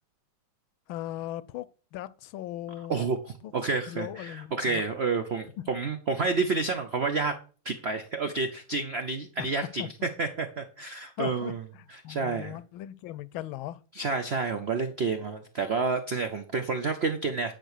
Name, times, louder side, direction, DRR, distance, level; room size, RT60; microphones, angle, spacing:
voice 1, 0.9-3.0 3.4-3.5 3.9-4.8 9.4-9.5 9.8-9.9 11.2-13.8, left 13 dB, 80° left, 1.4 m, -38 dB
voice 2, 2.9-7.4 7.6-11.6 11.9-12.6 13.9-17.5, right 4 dB, 90° right, 0.5 m, -29 dB
10.0 x 4.5 x 6.6 m
omnidirectional pair, 2.3 m